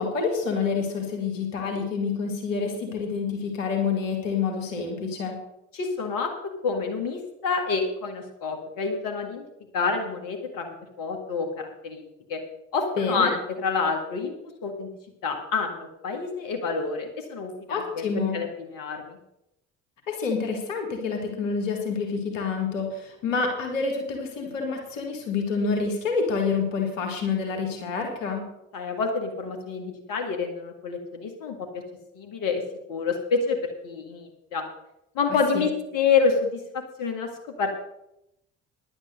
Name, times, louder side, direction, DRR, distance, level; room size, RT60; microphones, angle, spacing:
voice 1, 0.0-5.4 13.0-13.3 17.7-18.4 20.1-28.5 35.5-35.7, left 5 dB, 80° left, 3 dB, 2.0 m, -28 dB
voice 2, 5.7-9.4 9.7-12.0 12.3-12.4 12.7-14.3 14.6-14.9 15.2-18.0 18.3-19.2 28.7-31.8 32.1-32.6 32.9-34.6 35.2-37.3 37.6-37.7, left 5 dB, 60° left, 3 dB, 1.9 m, -28 dB
10.0 x 8.7 x 6.6 m, 0.83 s
figure-of-eight pair, 45°, 38 cm